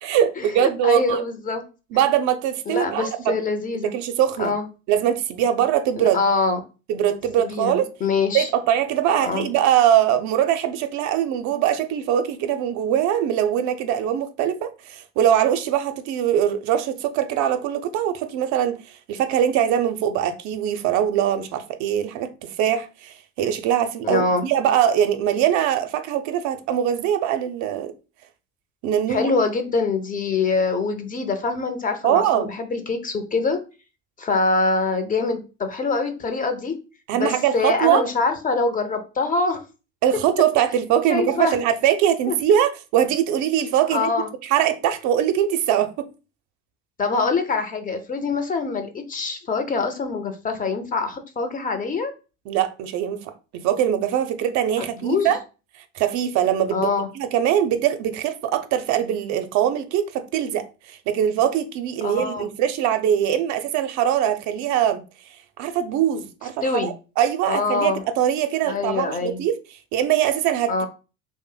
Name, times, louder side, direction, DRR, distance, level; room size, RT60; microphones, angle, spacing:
voice 1, 0.0-1.2 1.9-3.3 3.8-4.5 4.9-6.2 6.9-7.8 8.3-18.8 19.1-27.9 28.8-29.3 32.0-32.5 37.1-38.0 40.0-44.1 44.4-46.1 52.5-55.4 55.9-65.0 65.6-69.5 69.9-70.9, right 10 dB, 45° right, 0.5 m, -22 dB
voice 2, 0.6-1.6 2.7-3.9 4.4-4.7 6.0-6.6 7.4-8.5 9.2-9.5 24.0-24.5 29.1-33.6 34.2-36.7 37.1-39.6 41.1-41.6 42.3-42.4 43.9-44.3 47.0-52.1 55.0-55.3 56.7-57.1 62.0-62.5 66.6-66.9 67.5-68.0 68.7-69.4 70.7-70.9, left 4 dB, 20° left, 0.6 m, -24 dB
2.5 x 2.1 x 3.7 m
hypercardioid pair, 75°, 40 cm